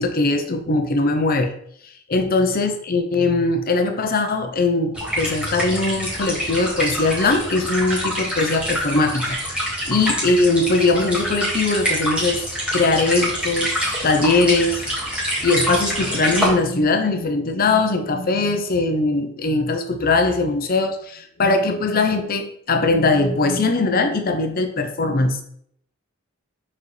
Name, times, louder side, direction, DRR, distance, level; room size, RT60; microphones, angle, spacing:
voice 1, 0.0-1.5 2.1-9.4 9.9-12.4 12.7-14.8 15.4-25.4, left 3 dB, 45° left, 6 dB, 0.7 m, -20 dB
sound 1, 4.9-16.5, equal, 5° right, 1.9 m, -25 dB
7.4 x 4.2 x 3.3 m, 0.68 s
head